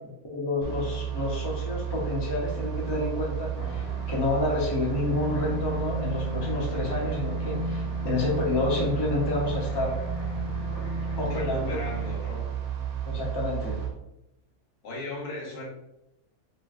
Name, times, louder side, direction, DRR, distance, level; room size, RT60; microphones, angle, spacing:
voice 1, 0.3-9.9 11.2-11.8 13.0-13.8, left 2 dB, 25° left, -4 dB, 0.6 m, -29 dB
sound 1, 0.6-13.9, right 9 dB, 75° right, 1.0 m, -32 dB
sound 2, 3.6-12.1, left 2 dB, 50° left, 0.8 m, -36 dB
voice 2, 11.2-12.5 14.8-15.7, left 2 dB, 90° left, -3 dB, 1.5 m, -37 dB
3.2 x 3.0 x 2.4 m, 0.88 s
omnidirectional pair, 1.6 m